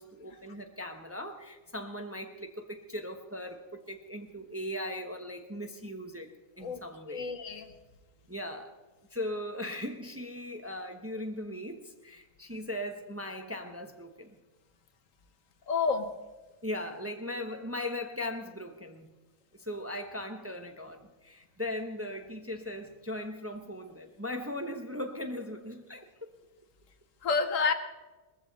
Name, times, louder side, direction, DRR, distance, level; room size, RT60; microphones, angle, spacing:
voice 1, 0.0-6.3 6.6-7.3 8.3-8.8 9.1-14.4 16.6-19.1 19.5-26.1, left 1 dB, 10° right, 5 dB, 1.0 m, -38 dB
voice 2, 7.1-7.7 15.7-16.1 27.2-27.7, left 5 dB, 70° left, 9 dB, 1.4 m, -29 dB
20.0 x 14.5 x 4.1 m, 1.2 s
omnidirectional pair, 1.5 m